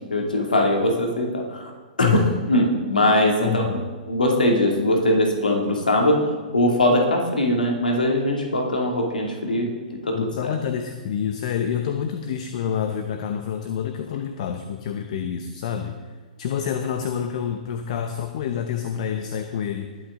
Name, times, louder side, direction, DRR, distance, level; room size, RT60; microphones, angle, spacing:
voice 1, 0.1-1.7 2.0-2.2 2.5-3.6 4.1-6.2 6.5-9.7 10.0-10.5, left 1 dB, 85° left, 1 dB, 2.6 m, -21 dB
voice 2, 3.4-3.8 10.1-15.9 16.4-19.9, left 8 dB, 55° left, 7 dB, 0.9 m, -27 dB
20.0 x 8.6 x 3.8 m, 1.5 s
figure-of-eight pair, 115°, 5 cm